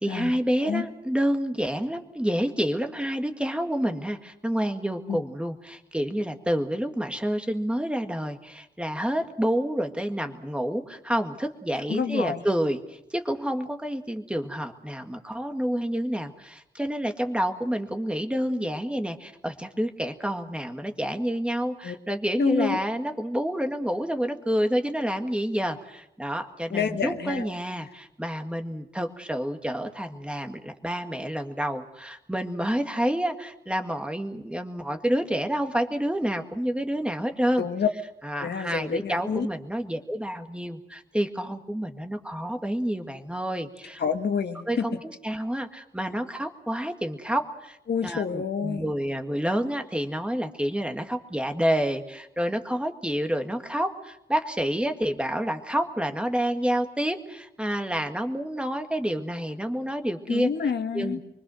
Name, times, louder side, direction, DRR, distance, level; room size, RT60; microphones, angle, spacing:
voice 1, 0.0-37.7 38.2-44.0 44.7-60.5 60.9-61.2, equal, 5° right, 5 dB, 1.8 m, -28 dB
voice 2, 11.9-12.4 21.8-21.9 22.3-22.8 26.7-27.5 37.6-37.9 38.3-39.5 44.0-44.9 47.9-48.9 60.3-61.2, left 6 dB, 80° left, 6 dB, 1.7 m, -28 dB
25.5 x 24.0 x 6.4 m, 0.83 s
wide cardioid pair, 155°, 17 cm